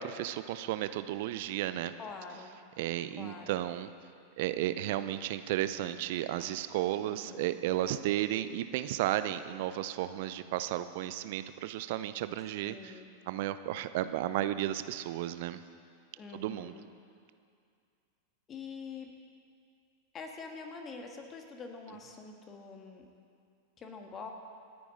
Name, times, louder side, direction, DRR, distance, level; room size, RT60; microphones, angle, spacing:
voice 1, 0.0-1.9 2.8-3.9 4.4-12.9 13.3-15.6 16.3-16.7, right 13 dB, 50° right, 12 dB, 0.6 m, -33 dB
voice 2, 2.0-2.5 3.2-3.6 7.0-7.6 12.6-13.1 16.2-16.9 18.5-19.1 20.1-23.1 23.8-24.3, left 4 dB, 25° left, 3 dB, 1.8 m, -45 dB
27.0 x 9.7 x 4.0 m, 2.4 s
figure-of-eight pair, 90°, 0 cm